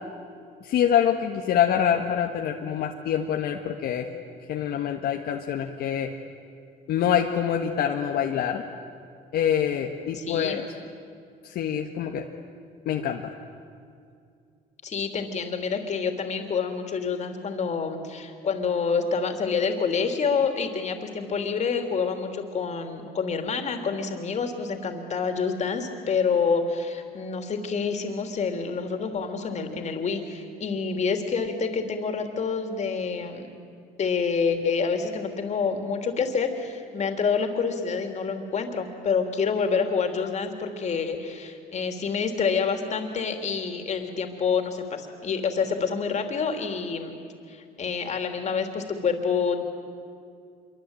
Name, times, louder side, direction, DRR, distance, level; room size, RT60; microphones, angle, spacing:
voice 1, 0.6-4.1 4.5-6.1 6.9-8.6 9.3-10.6 11.4-12.3 12.8-13.3, left 9 dB, 70° left, 2 dB, 1.5 m, -25 dB
voice 2, 10.1-10.6 14.8-33.5 34.0-47.2 47.5-49.6, left 5 dB, 45° left, 5 dB, 3.3 m, -27 dB
26.5 x 23.5 x 9.1 m, 2.3 s
cardioid pair, 110°, 17 cm